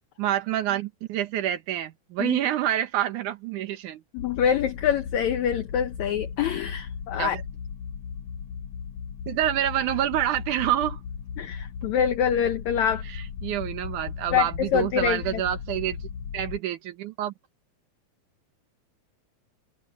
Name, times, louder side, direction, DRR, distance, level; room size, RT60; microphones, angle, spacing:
voice 1, 0.2-4.0 7.2-7.4 9.3-11.0 13.1-16.1 16.3-17.3, right 12 dB, 65° right, 2.3 m, -27 dB
voice 2, 4.1-7.4 11.4-13.0 14.3-15.4, left 8 dB, 75° left, 1.7 m, -25 dB
sound 1, 4.2-16.6, left 6 dB, 60° left, 2.4 m, -36 dB
omnidirectional pair, 4.4 m